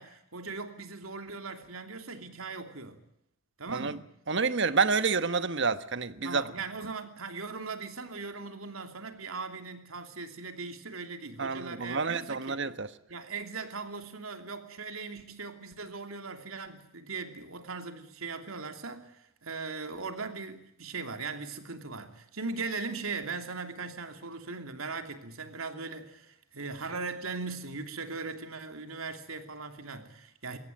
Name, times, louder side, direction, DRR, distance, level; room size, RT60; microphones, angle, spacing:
voice 1, 0.0-3.0 3.6-4.0 6.2-12.6 13.1-30.6, right 4 dB, 90° right, 7 dB, 3.0 m, -39 dB
voice 2, 4.3-6.4 11.4-12.9, right 4 dB, 60° right, 13 dB, 1.3 m, -28 dB
23.0 x 18.0 x 9.2 m, 0.74 s
head